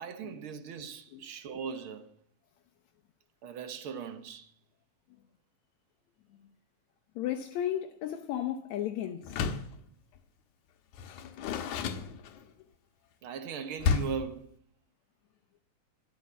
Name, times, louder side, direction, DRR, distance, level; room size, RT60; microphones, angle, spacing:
voice 1, 0.0-2.1 3.4-4.5 13.2-14.5, right 6 dB, 60° right, 1.5 m, -39 dB
voice 2, 7.2-9.4, left 11 dB, 75° left, 2.1 m, -34 dB
Door, 9.2-9.8 10.9-12.6 13.8-14.3, left 6 dB, 90° left, 2.5 m, -31 dB
13.5 x 10.5 x 7.1 m
omnidirectional pair, 3.4 m